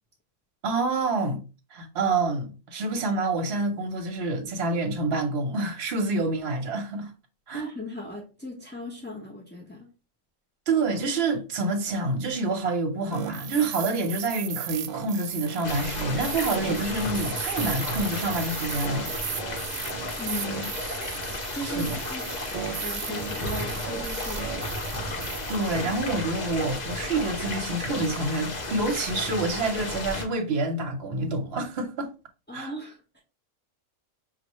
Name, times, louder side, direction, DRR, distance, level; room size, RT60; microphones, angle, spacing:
voice 1, 0.6-1.4 1.7-7.1 7.5-7.6 10.7-19.1 21.6-22.0 25.5-32.1 32.5-32.7, right 3 dB, 55° right, 1.0 m, -27 dB
voice 2, 7.5-9.9 20.2-20.7 21.5-22.3 22.8-24.5 32.5-33.2, equal, 15° left, 0.3 m, -37 dB
sound 1, 13.1-26.2, right 9 dB, 90° right, 1.0 m, -36 dB
sound 2, 15.6-30.2, left 2 dB, 40° left, 0.7 m, -33 dB
5.4 x 2.4 x 3.0 m
omnidirectional pair, 1.4 m